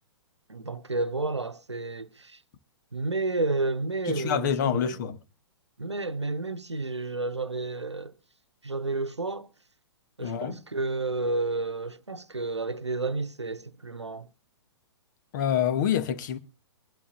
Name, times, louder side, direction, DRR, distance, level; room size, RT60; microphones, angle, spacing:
voice 1, 0.5-2.4 2.9-5.2 5.8-8.1 8.6-9.5 10.2-14.3, right 3 dB, 90° right, 0.8 m, -31 dB
voice 2, 4.1-5.2 10.2-10.6 15.3-16.4, left 9 dB, 45° left, 1.0 m, -27 dB
23.5 x 11.0 x 2.5 m
figure-of-eight pair, 115°, 14 cm